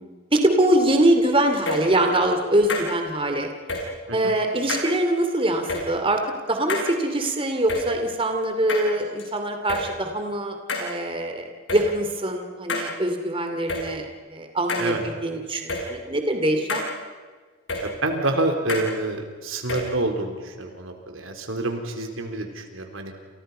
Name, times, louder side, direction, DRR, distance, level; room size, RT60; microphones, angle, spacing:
voice 1, 0.0-3.5 4.1-6.2 6.5-16.8, right 1 dB, 25° right, 5 dB, 2.6 m, -23 dB
sound 1, 1.6-1.9 2.7-2.9 3.7-3.8 4.7-4.9 5.7-5.8 6.7-6.9 7.7-7.8 8.7-9.2 9.7-9.8 10.7-10.9 11.7-11.8 12.7-12.9 13.7-13.8 14.7-14.9 15.7-15.8 16.7-16.9 17.7-17.8 18.7-18.9 19.7-19.8, left 3 dB, 65° left, 6.3 m, -27 dB
voice 2, 17.8-23.1, right 2 dB, 90° right, 4 dB, 3.8 m, -27 dB
29.5 x 29.5 x 5.6 m, 1.5 s
head